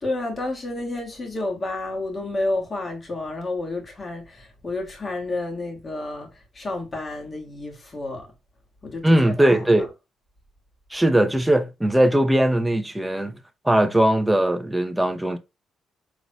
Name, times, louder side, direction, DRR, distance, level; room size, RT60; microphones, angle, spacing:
voice 1, 0.0-6.3 6.5-8.3 8.8-9.9, left 2 dB, 35° left, 2.1 m, -30 dB
voice 2, 9.0-9.9 10.9-13.4 13.6-15.4, right 1 dB, 5° right, 0.7 m, -19 dB
4.7 x 3.9 x 2.3 m
cardioid pair, 90°, 0 cm